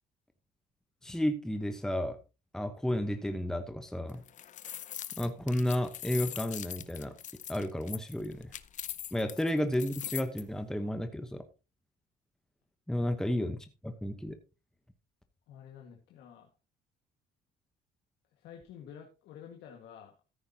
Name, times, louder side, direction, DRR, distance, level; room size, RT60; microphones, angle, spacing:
voice 1, 1.0-2.2 2.5-4.2 5.2-7.1 7.5-8.5 9.1-11.4 12.9-13.6 13.8-14.4, left 1 dB, 5° left, 8 dB, 0.9 m, -32 dB
sound 1, 4.1-10.4, left 10 dB, 45° left, 0.7 m, -41 dB
voice 2, 15.5-16.5 18.3-20.2, left 8 dB, 80° left, 1 dB, 1.7 m, -50 dB
14.0 x 9.6 x 2.8 m, 0.30 s
cardioid pair, 110°, 17 cm